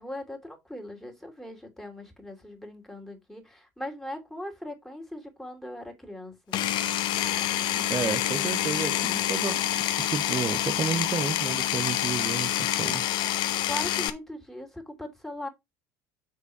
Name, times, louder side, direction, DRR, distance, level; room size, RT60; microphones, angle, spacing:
voice 1, 0.0-6.5 13.6-15.5, left 1 dB, 5° left, 3.0 m, -39 dB
Power tool, 6.5-14.1, left 12 dB, 55° left, 1.0 m, -27 dB
voice 2, 7.7-9.6 10.1-13.0, right 6 dB, 30° right, 0.9 m, -31 dB
6.8 x 4.7 x 4.6 m
figure-of-eight pair, 65°, 9 cm